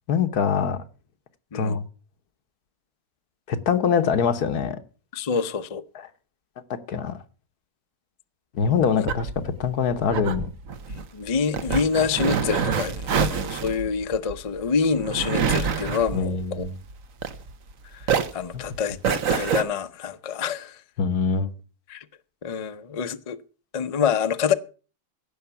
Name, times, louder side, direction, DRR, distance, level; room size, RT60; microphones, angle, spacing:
voice 1, 0.1-0.8 1.5-1.9 3.5-4.8 6.9-7.2 8.6-10.5 16.1-16.7 18.5-18.6 21.0-21.5, left 6 dB, 85° left, 1.6 m, -23 dB
voice 2, 5.1-5.8 9.0-9.1 10.9-16.7 17.9-20.8 21.9-22.1 22.4-23.4 23.7-24.5, left 6 dB, 40° left, 0.5 m, -27 dB
sound 1, 8.6-17.7 18.0-19.6, right 6 dB, 65° right, 1.4 m, -27 dB
16.0 x 5.7 x 6.9 m
omnidirectional pair, 1.6 m